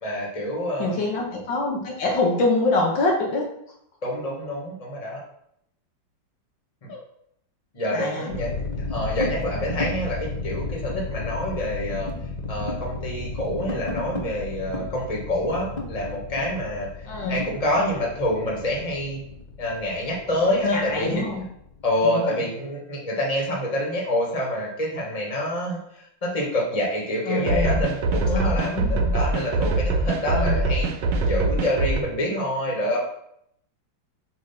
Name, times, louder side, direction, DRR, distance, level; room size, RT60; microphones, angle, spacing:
voice 1, 0.0-1.0 4.0-5.2 6.8-6.9 7.7-12.1 12.5-16.9 17.3-19.2 19.6-21.2 21.8-25.8 26.2-33.0, left 1 dB, 20° left, -2 dB, 1.6 m, -27 dB
voice 2, 0.8-3.5 6.9-7.0 7.9-8.3 17.1-17.4 20.6-21.4 22.0-22.4 27.3-27.8 28.2-29.2 30.3-30.7, left 2 dB, 70° left, -1 dB, 1.8 m, -25 dB
sound 1, 8.3-21.9, left 3 dB, 40° left, 0.5 m, -33 dB
sound 2, 27.5-32.0, right 3 dB, 70° right, 1.4 m, -23 dB
7.3 x 3.0 x 5.7 m, 0.73 s
omnidirectional pair, 2.2 m